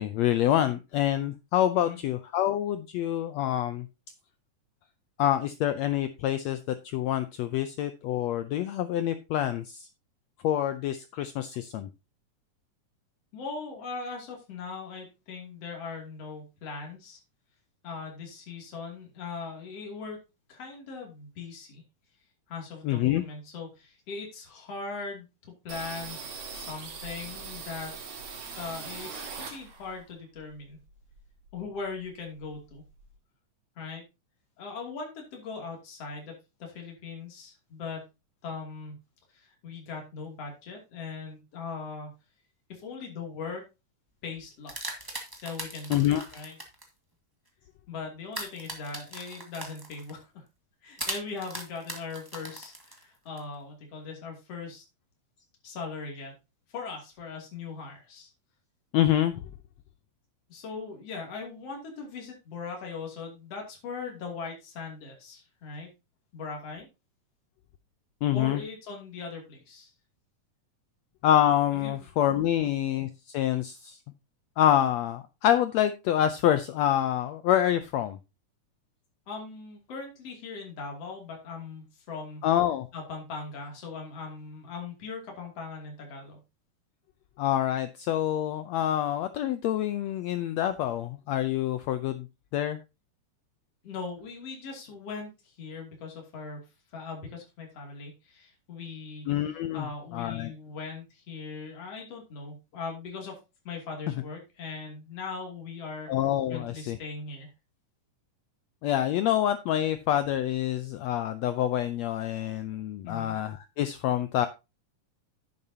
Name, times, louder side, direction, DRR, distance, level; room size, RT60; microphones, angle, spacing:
voice 1, 0.0-3.9 5.2-9.9 10.4-11.9 22.8-23.2 45.9-46.2 58.9-59.5 68.2-68.6 71.2-74.0 74.6-78.2 82.4-82.9 87.4-92.3 92.5-92.8 99.3-99.9 100.1-100.5 106.1-107.0 108.8-114.5, left 11 dB, 85° left, 11 dB, 1.5 m, -26 dB
voice 2, 13.3-17.2 17.8-20.2 20.5-21.8 22.5-26.2 26.5-27.9 28.6-30.8 31.5-32.8 33.8-34.0 34.6-36.4 36.6-38.0 38.4-39.0 39.3-42.1 42.7-43.6 44.2-45.1 45.4-46.5 47.9-50.5 50.8-54.8 55.6-56.3 56.7-58.3 60.5-65.9 66.3-66.9 68.3-69.9 71.7-72.1 72.5-72.7 79.3-82.5 82.9-86.4 93.8-99.3 99.7-103.4 103.7-106.1 106.5-107.5 113.0-113.4, left 4 dB, 50° left, 1 dB, 3.6 m, -40 dB
sound 1, 25.7-30.0 30.4-31.7 32.0-32.1 32.4-33.1, right 5 dB, 60° right, 3.3 m, -41 dB
sound 2, 44.4-46.8 48.3-50.2 51.0-53.4, right 1 dB, 15° right, 0.8 m, -39 dB
10.5 x 8.7 x 2.8 m, 0.26 s
omnidirectional pair, 3.7 m